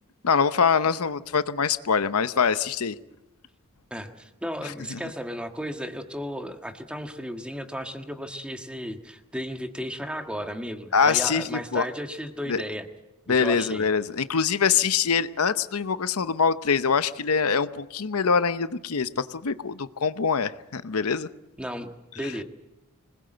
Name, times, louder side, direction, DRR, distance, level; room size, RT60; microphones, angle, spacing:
voice 1, 0.2-3.0 4.6-5.0 10.9-11.9 12.5-12.6 13.3-21.3 22.2-22.3, left 6 dB, 80° left, 12 dB, 0.8 m, -24 dB
voice 2, 3.9-12.9 13.4-13.8 21.6-21.9 22.1-22.4, equal, 5° right, 5 dB, 1.6 m, -34 dB
26.0 x 20.0 x 7.9 m, 0.97 s
head